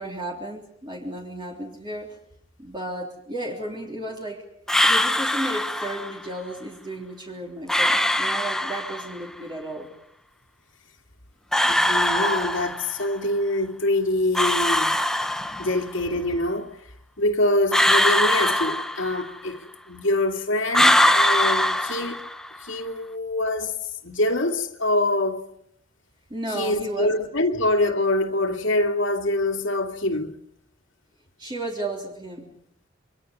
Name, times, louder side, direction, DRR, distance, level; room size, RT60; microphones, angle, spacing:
voice 1, 0.0-2.2 2.6-4.4 4.8-9.9 26.3-27.1 31.4-32.5, right 1 dB, 25° right, 3.6 m, -33 dB
sound 1, 4.7-6.2 7.7-9.2 11.5-13.1 14.3-15.9 17.7-19.5 20.7-22.6, left 1 dB, 5° left, 1.0 m, -22 dB
voice 2, 11.6-15.0 15.6-16.8 17.2-22.2 22.6-23.8 24.0-25.5 26.5-30.4, left 1 dB, 70° left, 2.5 m, -25 dB
28.0 x 24.5 x 5.5 m
head